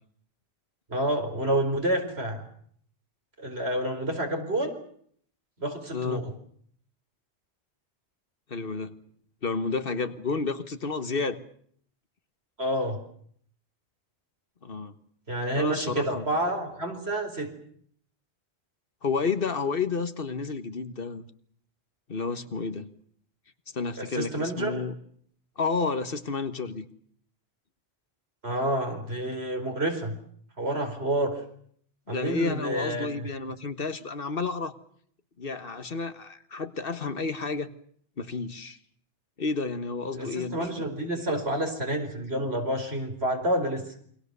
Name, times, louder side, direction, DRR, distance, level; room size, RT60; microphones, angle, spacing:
voice 1, 0.9-2.5 3.4-4.7 5.6-6.3 12.6-13.0 15.3-17.5 24.0-24.8 28.4-30.2 30.6-31.4 32.1-33.1 40.1-43.9, right 1 dB, 70° right, 4 dB, 4.9 m, -29 dB
voice 2, 5.9-6.3 8.5-9.0 9.4-11.4 14.6-15.0 15.6-16.2 19.0-21.3 22.1-22.9 23.7-24.9 25.6-26.8 32.1-34.7 35.4-37.7 38.2-38.8 39.4-40.9, left 4 dB, 55° left, 11 dB, 1.5 m, -31 dB
28.5 x 23.5 x 6.8 m, 0.62 s
omnidirectional pair, 1.1 m